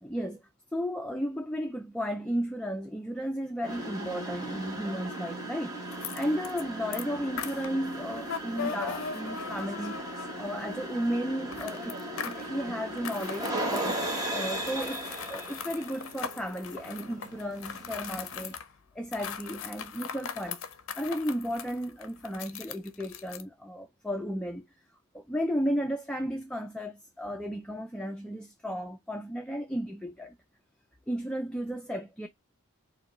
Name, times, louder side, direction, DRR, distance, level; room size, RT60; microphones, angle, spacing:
voice 1, 0.0-10.0 10.4-18.6 18.9-20.6 21.0-24.7 25.1-30.3 31.1-32.3, equal, 5° left, 0.4 m, -34 dB
sound 1, 3.6-18.5, right 1 dB, 15° right, 0.9 m, -37 dB
sound 2, 5.9-6.6 6.9-10.9 11.5-12.5 13.0-18.7 19.1-23.4, left 7 dB, 60° left, 0.5 m, -40 dB
4.8 x 2.2 x 3.0 m
head